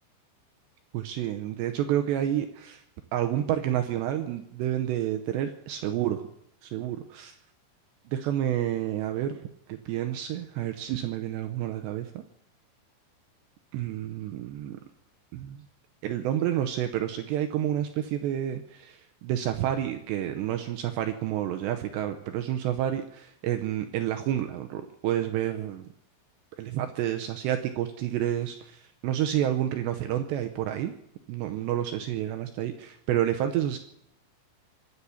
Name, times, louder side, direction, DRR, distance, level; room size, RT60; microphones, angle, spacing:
voice 1, 0.9-2.8 3.1-6.3 6.6-7.4 8.1-9.4 9.7-12.2 13.7-14.8 15.3-15.6 16.0-25.9 26.6-30.9 31.3-33.8, right 11 dB, 80° right, 6 dB, 2.6 m, -29 dB
24.5 x 8.3 x 7.1 m, 0.73 s
omnidirectional pair, 5.7 m